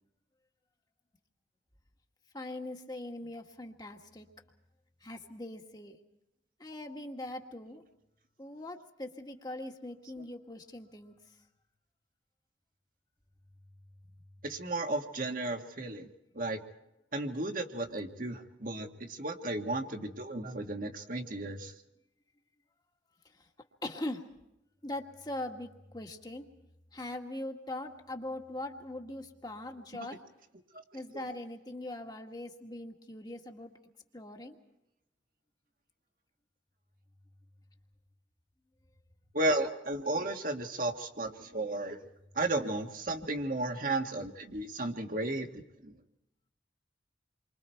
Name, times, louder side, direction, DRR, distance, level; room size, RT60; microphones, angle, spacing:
voice 1, 2.3-4.3 5.0-6.0 6.6-7.8 8.4-11.1 23.8-24.2 24.8-26.4 26.9-30.2 30.9-33.7 34.1-34.5, left 1 dB, 20° left, 3 dB, 1.9 m, -41 dB
voice 2, 14.4-16.1 16.4-16.6 17.1-21.7 31.1-31.3 39.3-42.0 42.4-45.9, right 2 dB, 50° right, 4 dB, 1.8 m, -34 dB
29.0 x 24.5 x 4.6 m, 0.87 s
head